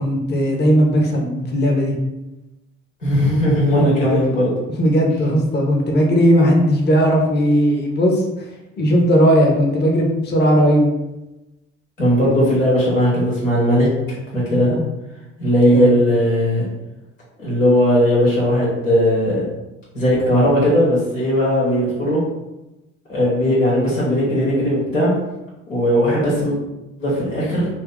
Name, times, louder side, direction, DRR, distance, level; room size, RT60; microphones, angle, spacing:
voice 1, 0.0-2.0 3.8-4.2 4.8-8.2 8.8-10.9 15.6-15.9, equal, 25° left, 0 dB, 0.8 m, -17 dB
voice 2, 3.0-4.5 12.0-13.9 14.3-14.8 15.4-16.6 17.4-19.4 19.9-22.2 23.1-25.1 25.7-26.6 27.0-27.7, equal, 85° left, -7 dB, 1.1 m, -17 dB
2.8 x 2.5 x 3.6 m, 0.99 s
figure-of-eight pair, 50°, 38 cm